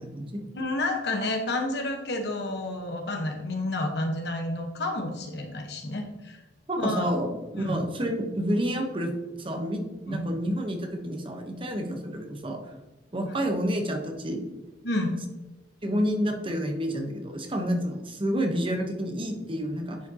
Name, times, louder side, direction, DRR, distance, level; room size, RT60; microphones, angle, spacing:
voice 1, 0.0-0.4 6.7-9.1 9.4-12.6 13.1-14.5 15.8-20.0, equal, 30° right, 4 dB, 1.0 m, -29 dB
voice 2, 0.5-6.4 6.8-7.1 7.6-7.8 10.1-10.2 14.8-15.2, left 2 dB, 65° left, 3 dB, 1.3 m, -30 dB
10.0 x 5.0 x 2.9 m, 1.1 s
head